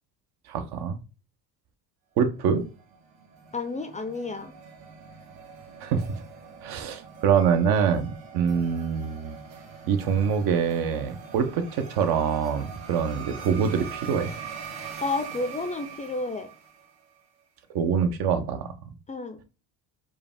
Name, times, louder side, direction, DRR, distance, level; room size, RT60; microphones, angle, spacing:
voice 1, 0.5-1.0 2.2-2.6 5.8-6.2 6.6-9.4 9.9-14.3 17.7-18.7, right 7 dB, 60° right, 8 dB, 0.9 m, -25 dB
sound 1, 2.5-17.1, right 6 dB, 80° right, 1.6 m, -43 dB
voice 2, 3.5-4.5 15.0-16.5 19.1-19.4, left 3 dB, 15° left, 7 dB, 0.5 m, -31 dB
4.7 x 2.4 x 3.5 m, 0.33 s
supercardioid pair, 95°, 43 cm